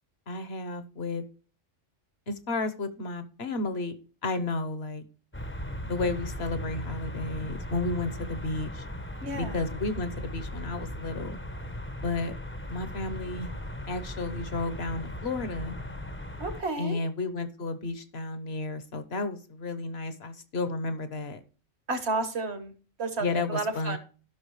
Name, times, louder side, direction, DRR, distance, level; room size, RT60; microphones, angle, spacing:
voice 1, 0.3-1.2 2.3-3.9 4.2-5.0 5.9-8.8 9.3-11.4 12.0-12.4 12.7-13.5 13.9-15.8 16.8-21.4 23.2-24.0, left 3 dB, 60° left, 11 dB, 1.3 m, -32 dB
sound 1, 5.3-16.6, equal, 10° left, 0.7 m, -38 dB
voice 2, 9.2-9.6 16.4-17.0 21.9-22.7 23.0-24.0, right 3 dB, 60° right, 8 dB, 1.6 m, -31 dB
14.5 x 6.1 x 3.2 m, 0.37 s
omnidirectional pair, 1.3 m